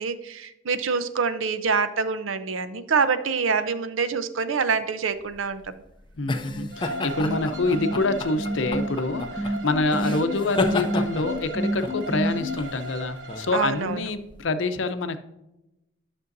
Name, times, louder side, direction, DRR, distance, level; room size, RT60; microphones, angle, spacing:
voice 1, 0.0-5.6 7.3-7.5 10.0-10.3 13.5-14.1, right 5 dB, 90° right, 12 dB, 0.6 m, -26 dB
sound 1, 5.2-14.4, left 2 dB, 25° left, 0.5 m, -32 dB
voice 2, 6.1-15.2, left 2 dB, 75° left, 10 dB, 0.6 m, -26 dB
sound 2, 6.5-12.5, equal, 10° right, 0.9 m, -29 dB
Bowed string instrument, 6.7-13.9, right 1 dB, 65° right, 0.9 m, -37 dB
10.5 x 6.2 x 2.6 m, 0.93 s
head